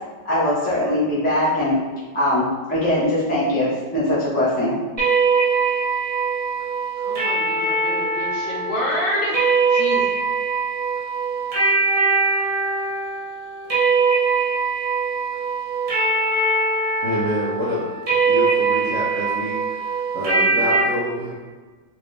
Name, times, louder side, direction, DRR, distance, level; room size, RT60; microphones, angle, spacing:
voice 1, 0.2-1.8 2.1-4.8, left 1 dB, 10° left, -8 dB, 0.5 m, -21 dB
sound 1, 5.0-20.8, right 4 dB, 55° right, 0.4 m, -22 dB
voice 2, 7.0-9.3 9.7-10.0, left 1 dB, 80° left, -4 dB, 1.7 m, -27 dB
voice 3, 17.0-17.8 18.3-21.4, equal, 70° right, -7 dB, 0.7 m, -27 dB
4.0 x 2.6 x 3.2 m, 1.4 s
omnidirectional pair, 2.1 m